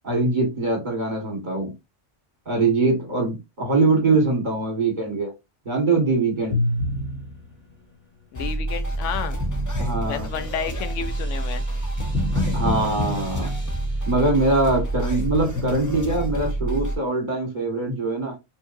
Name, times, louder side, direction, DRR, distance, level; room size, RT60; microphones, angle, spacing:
voice 1, 0.0-1.7 2.4-5.3 5.6-6.6 9.8-10.3 12.5-13.5 14.1-18.3, right 3 dB, 40° right, 1.7 m, -22 dB
sound 1, 6.5-7.7 8.9-14.3 15.1-16.4, left 1 dB, 10° left, 1.3 m, -30 dB
voice 2, 8.3-9.4 10.1-11.6, left 7 dB, 85° left, 1.0 m, -31 dB
sound 2, 8.3-17.0, right 2 dB, 25° left, 0.4 m, -28 dB
4.5 x 3.0 x 2.6 m
omnidirectional pair, 1.2 m